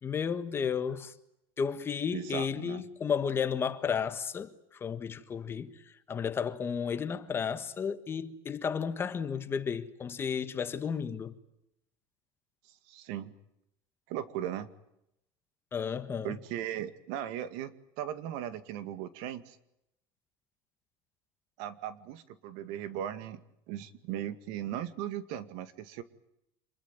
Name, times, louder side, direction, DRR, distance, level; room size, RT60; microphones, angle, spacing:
voice 1, 0.0-1.1 1.6-11.3 15.7-16.3, left 6 dB, 20° left, 1.5 m, -33 dB
voice 2, 2.1-2.8 12.9-13.3 14.1-14.7 16.2-19.6 21.6-23.4 23.7-26.0, right 11 dB, 65° right, 2.2 m, -38 dB
27.0 x 22.0 x 9.1 m
cardioid pair, 160°, 11 cm